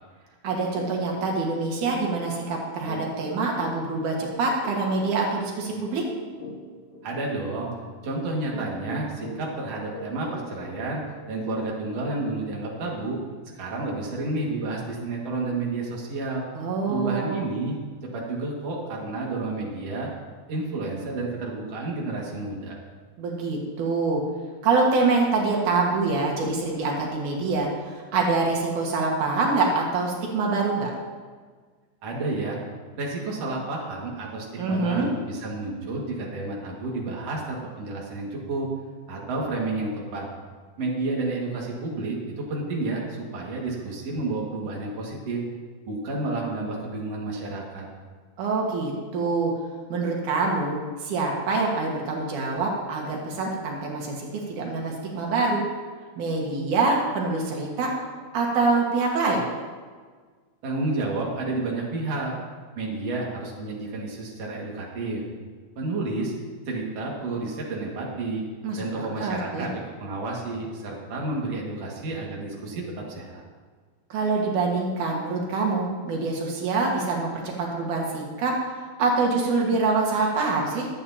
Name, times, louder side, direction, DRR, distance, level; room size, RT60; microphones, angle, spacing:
voice 1, 0.4-6.0 16.5-17.4 23.2-24.2 24.6-30.9 34.6-35.1 48.4-49.5 49.9-55.6 56.2-57.9 58.3-59.4 68.6-69.7 74.1-80.9, right 3 dB, 90° right, -1 dB, 3.2 m, -25 dB
sound 1, 0.8-0.9 1.3-1.4 1.8-12.0, left 1 dB, 75° left, 3.0 m, -42 dB
voice 2, 7.0-7.7 8.0-11.0 11.3-13.2 13.5-16.4 16.9-17.8 18.1-20.1 20.5-22.8 32.0-32.6 33.0-38.7 39.1-40.3 40.8-45.4 45.9-47.9 60.6-62.3 62.8-65.2 65.8-66.3 66.7-68.4 68.8-73.4, right 2 dB, 55° right, -3 dB, 3.0 m, -30 dB
24.0 x 8.7 x 2.9 m, 1.5 s
omnidirectional pair, 3.4 m